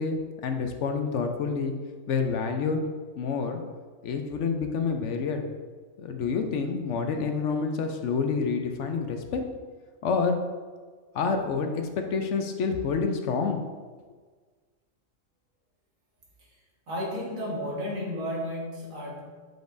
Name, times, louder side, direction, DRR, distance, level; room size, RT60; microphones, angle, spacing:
voice 1, 0.0-1.7 2.1-2.8 3.2-3.6 4.0-5.4 6.0-9.4 10.0-10.4 11.1-13.6, left 5 dB, 65° left, 5 dB, 0.9 m, -28 dB
voice 2, 16.9-19.2, equal, 90° right, -4 dB, 1.9 m, -32 dB
7.7 x 5.1 x 2.6 m, 1.5 s
omnidirectional pair, 1.4 m